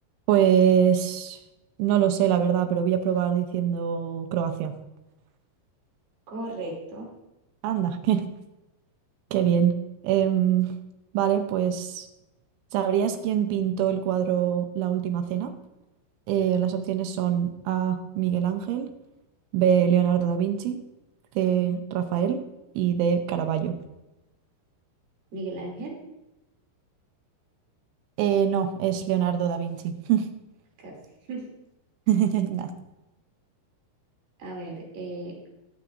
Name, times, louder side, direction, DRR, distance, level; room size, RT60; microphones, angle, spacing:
voice 1, 0.3-1.4 1.8-4.7 7.6-8.2 9.3-9.8 10.0-10.7 11.1-12.1 12.7-15.5 16.3-18.9 19.5-20.8 21.4-22.4 22.8-23.8 28.2-30.3 32.1-32.7, right 9 dB, 80° right, 7 dB, 3.1 m, -24 dB
voice 2, 6.3-7.2 25.3-26.0 30.8-31.0 31.3-31.5 34.4-35.4, right 2 dB, 55° right, -2 dB, 4.2 m, -35 dB
20.5 x 7.4 x 2.6 m, 0.95 s
omnidirectional pair, 5.7 m